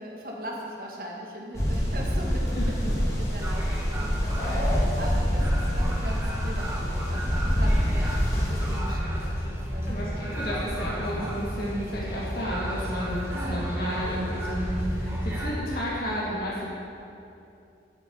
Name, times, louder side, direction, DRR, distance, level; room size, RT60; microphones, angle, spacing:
voice 1, 0.0-10.1 13.3-14.1, equal, 50° right, -2 dB, 2.1 m, -39 dB
sound 1, 1.5-8.8, equal, 20° left, 2.2 m, -26 dB
voice 2, 2.5-2.9 9.9-16.6, equal, 55° left, -7 dB, 2.2 m, -32 dB
sound 2, 3.4-15.5, equal, 15° right, 1.7 m, -32 dB
8.9 x 7.8 x 9.1 m, 2.7 s
head